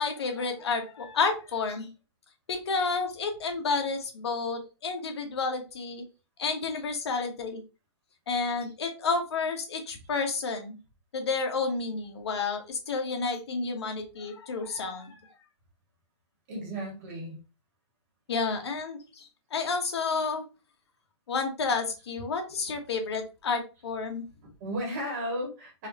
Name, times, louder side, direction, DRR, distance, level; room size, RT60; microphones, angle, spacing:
voice 1, 0.0-1.9 2.5-6.0 6.4-7.6 8.3-10.8 11.1-15.2 18.3-20.4 21.3-24.3, left 4 dB, 60° left, 3 dB, 1.4 m, -30 dB
voice 2, 16.5-17.4 18.6-18.7 24.4-25.9, equal, 30° right, -1 dB, 2.0 m, -35 dB
4.6 x 3.2 x 2.9 m, 0.31 s
hypercardioid pair, 170°, 15 cm